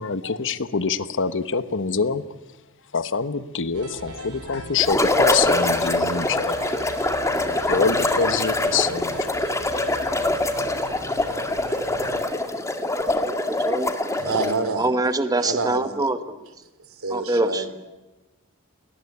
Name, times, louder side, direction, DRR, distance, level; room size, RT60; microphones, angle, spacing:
voice 1, 0.0-2.4 2.9-6.8 7.6-9.3, left 5 dB, 60° left, 13 dB, 1.2 m, -25 dB
sound 1, 3.7-12.2, right 2 dB, 80° right, 4.7 m, -40 dB
sound 2, 4.8-14.7, left 2 dB, 15° left, 2.2 m, -24 dB
voice 2, 13.1-13.9 14.7-16.4 17.1-17.7, right 2 dB, 15° right, 10 dB, 1.2 m, -25 dB
voice 3, 14.2-14.8 15.4-16.1 17.0-17.7, right 3 dB, 65° right, 11 dB, 3.0 m, -27 dB
30.0 x 21.0 x 8.5 m, 1.1 s
head